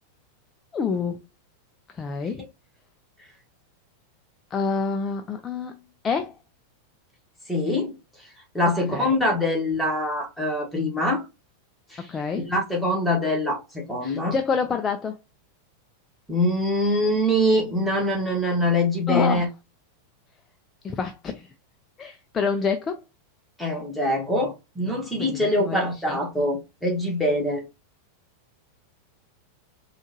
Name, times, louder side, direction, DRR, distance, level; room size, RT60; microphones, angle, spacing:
voice 1, 0.7-1.2 1.9-2.4 4.5-5.8 6.0-6.4 8.9-9.2 12.1-12.5 14.0-15.2 19.1-19.5 20.8-21.5 22.0-23.0 25.2-25.8 26.1-26.2, left 5 dB, 20° left, 0.4 m, -27 dB
voice 2, 7.5-7.9 8.5-11.2 11.9-12.1 12.3-14.3 16.3-19.5 23.6-27.6, left 1 dB, ahead, 1.4 m, -24 dB
4.4 x 2.4 x 2.8 m
figure-of-eight pair, 90°, 0 cm